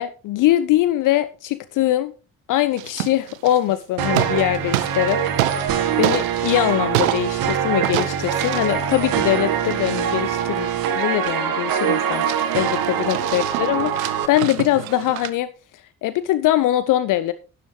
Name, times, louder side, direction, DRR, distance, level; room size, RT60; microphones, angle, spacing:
voice 1, 0.0-2.1 2.5-5.2 6.0-10.7 10.9-12.3 12.5-15.5 16.0-17.3, left 14 dB, 50° left, 15 dB, 0.7 m, -22 dB
sound 1, 2.8-3.7 4.0-5.7 6.0-7.5 7.8-11.4 11.8-11.9 12.2-15.3, right 14 dB, 70° right, 0.8 m, -27 dB
sound 2, 4.0-14.3, right 8 dB, 55° right, 1.6 m, -23 dB
11.5 x 10.5 x 3.2 m, 0.33 s
figure-of-eight pair, 45°, 42 cm